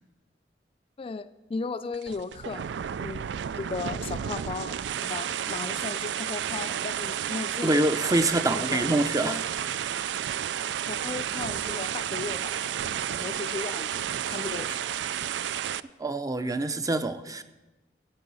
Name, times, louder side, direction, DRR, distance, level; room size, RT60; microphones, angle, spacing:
voice 1, 1.0-2.7 3.0-3.2 3.6-7.8 8.4-8.9 9.2-9.4 10.9-12.7 13.1-15.0, left 4 dB, 30° left, 11 dB, 0.3 m, -36 dB
sound 1, 1.9-15.8, right 9 dB, 80° right, 0.4 m, -31 dB
voice 2, 7.6-9.4 9.9-10.1 16.0-17.4, right 2 dB, 20° right, 10 dB, 0.6 m, -26 dB
15.5 x 8.9 x 5.5 m, 1.1 s
head